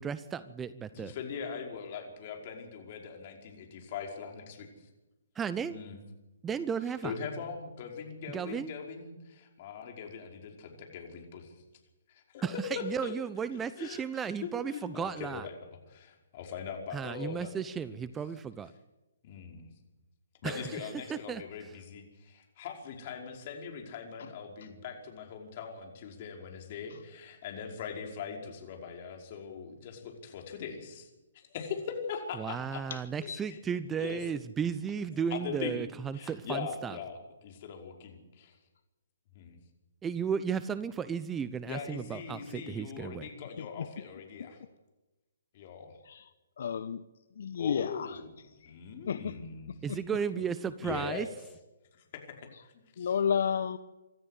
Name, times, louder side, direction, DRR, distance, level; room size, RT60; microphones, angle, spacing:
voice 1, 0.0-1.1 5.4-5.8 6.4-7.1 8.3-8.7 12.4-15.5 16.9-18.7 20.4-20.6 21.1-21.4 32.4-37.0 40.0-43.3 49.8-51.3, right 7 dB, 15° right, 15 dB, 0.7 m, -34 dB
voice 2, 0.9-4.9 5.7-6.0 7.0-11.5 12.1-12.5 12.7-13.1 13.8-17.5 17.9-18.0 19.2-19.7 20.4-31.1 31.3-32.8 33.2-33.6 34.0-34.2 35.3-35.8 36.1-38.6 39.4-39.6 41.7-44.6 45.5-46.0 47.6-48.3 48.6-49.7 50.8-51.3 52.1-52.2 53.0-53.1, left 6 dB, 40° left, 2 dB, 5.3 m, -41 dB
voice 3, 32.9-33.4 43.6-43.9 46.0-46.3 46.6-47.0 47.4-48.2 48.6-48.7 49.1-49.3 49.9-50.0 52.5-52.6 53.0-53.8, left 7 dB, 60° left, 13 dB, 1.0 m, -32 dB
26.0 x 13.5 x 8.3 m, 1.0 s
figure-of-eight pair, 135°, 0 cm